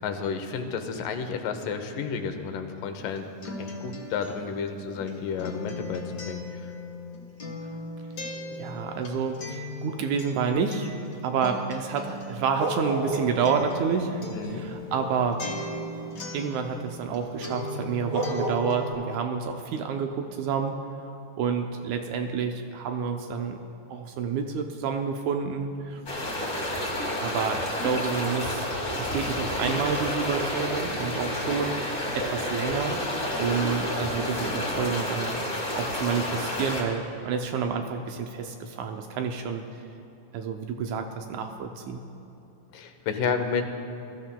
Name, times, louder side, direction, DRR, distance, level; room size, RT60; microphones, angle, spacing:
voice 1, 0.0-3.3 3.6-6.7 14.3-14.7 42.7-43.7, left 6 dB, 85° left, 6 dB, 2.4 m, -31 dB
Acoustic guitar, 2.9-17.2 17.4-18.9, left 2 dB, 50° left, 1.0 m, -38 dB
voice 2, 8.5-10.9 11.2-15.6 16.3-20.8 21.4-23.6 23.9-26.0 27.2-28.7 29.0-33.0 33.4-35.4 35.8-39.7 40.3-42.0, right 6 dB, 80° right, 5 dB, 1.8 m, -29 dB
sound 1, 12.1-13.5 13.7-16.1 17.8-17.9 18.1-18.6, right 3 dB, 50° right, 1.0 m, -31 dB
sound 2, 26.1-36.8, left 1 dB, 35° left, 1.5 m, -30 dB
21.0 x 13.5 x 2.2 m, 2.8 s
omnidirectional pair, 3.7 m